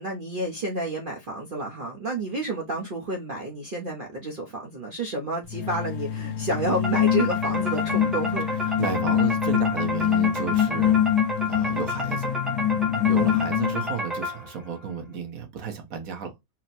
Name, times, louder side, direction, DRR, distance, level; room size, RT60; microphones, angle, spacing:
voice 1, 0.0-8.5, right 2 dB, 45° right, 0.7 m, -30 dB
sound 1, 5.5-14.1, left 10 dB, 80° left, 1.2 m, -25 dB
sound 2, 6.8-14.7, left 1 dB, ahead, 0.5 m, -31 dB
voice 2, 8.7-12.3 13.0-16.3, right 6 dB, 65° right, 1.3 m, -33 dB
4.3 x 2.1 x 4.0 m
omnidirectional pair, 1.7 m